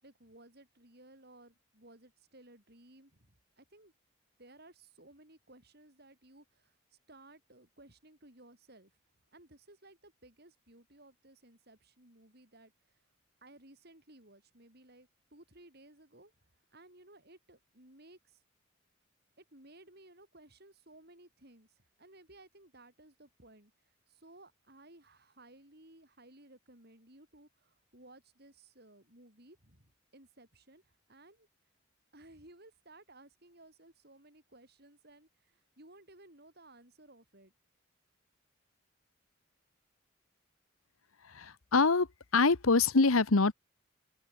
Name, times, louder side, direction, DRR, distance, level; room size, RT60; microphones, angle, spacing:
voice 1, 0.0-3.9 4.4-8.9 9.3-13.0 13.4-18.4 19.4-31.5 32.1-37.5, right 1 dB, 50° right, 7.6 m, -58 dB
voice 2, 41.3-42.1 42.3-43.5, left 3 dB, 90° left, 1.2 m, -25 dB
open air
head